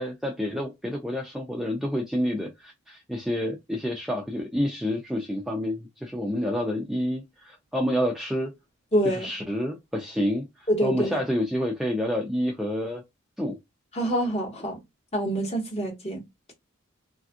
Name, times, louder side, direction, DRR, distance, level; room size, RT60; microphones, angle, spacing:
voice 1, 0.0-8.5 9.0-13.0 13.4-13.5, equal, ahead, 0.3 m, -28 dB
voice 2, 8.9-9.3 10.7-11.2 13.9-14.7 15.1-16.2, equal, 30° left, 1.0 m, -25 dB
3.3 x 2.4 x 2.4 m
head